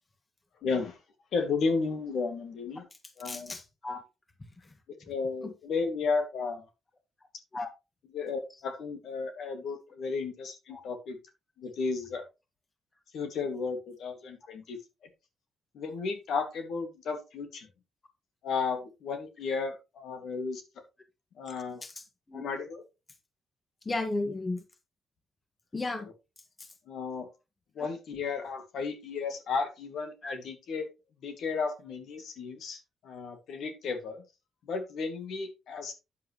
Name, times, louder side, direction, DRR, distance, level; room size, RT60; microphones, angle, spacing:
voice 1, 0.6-1.0 1.3-2.8 3.2-3.5 4.9-6.7 8.1-11.2 11.6-12.2 13.1-14.8 15.7-17.7 18.4-20.6 21.4-21.8 22.3-22.8 26.0-26.1 26.9-27.3 27.8-30.9 31.2-34.2 34.6-35.9, left 4 dB, 70° left, 6 dB, 2.2 m, -33 dB
voice 2, 3.2-4.0 4.7-4.8 5.4-5.5 7.5-7.7 10.7-10.8 21.8-22.5 23.9-24.6 25.7-26.1 26.6-26.7 27.8-27.9 30.2-30.3, left 2 dB, 25° left, 7 dB, 1.8 m, -35 dB
9.4 x 7.7 x 3.1 m, 0.26 s
cardioid pair, 100°, 0 cm